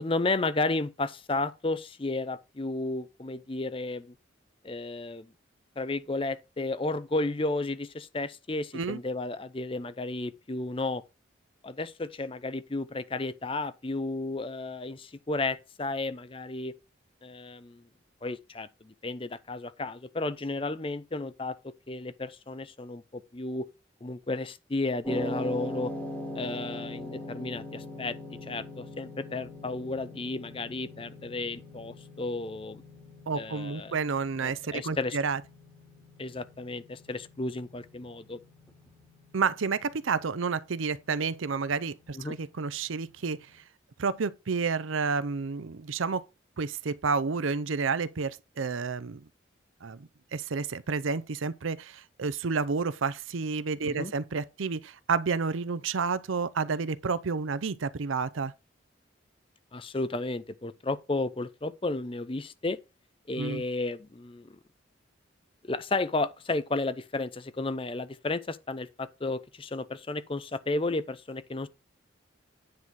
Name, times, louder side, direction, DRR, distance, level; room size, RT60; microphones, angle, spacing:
voice 1, 0.0-4.1 4.6-5.3 5.8-11.0 11.6-16.8 17.2-17.8 18.2-23.7 24.0-25.9 26.4-28.1 28.4-32.8 33.3-33.9 34.7-35.2 36.2-38.4 42.1-42.4 53.9-54.1 59.7-62.8 63.3-64.6 65.6-71.7, left 2 dB, 25° left, 0.5 m, -33 dB
sound 1, 25.0-43.3, left 1 dB, 5° left, 2.1 m, -42 dB
voice 2, 33.3-35.4 39.3-43.6 44.0-46.2 46.6-49.3 49.8-58.5 63.4-63.6, right 5 dB, 80° right, 0.6 m, -30 dB
9.6 x 4.0 x 6.1 m
head